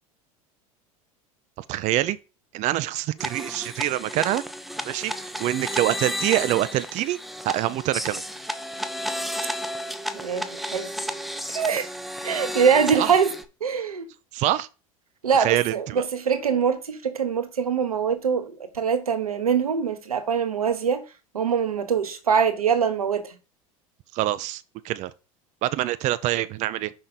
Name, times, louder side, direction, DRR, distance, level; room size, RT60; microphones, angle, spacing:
voice 1, 1.6-2.2 2.5-4.4 4.8-5.1 5.4-7.2 7.4-8.2 12.9-13.1 14.3-14.7 15.3-16.0 24.1-25.1 25.6-26.9, right 15 dB, 40° right, 0.5 m, -25 dB
sound 1, 3.2-13.5, equal, ahead, 0.7 m, -32 dB
voice 2, 10.1-10.9 11.5-11.9 12.2-13.3 13.6-14.1 15.2-21.0 21.3-23.3, right 6 dB, 85° right, 1.0 m, -23 dB
5.9 x 5.0 x 4.0 m
hypercardioid pair, 80°, 18 cm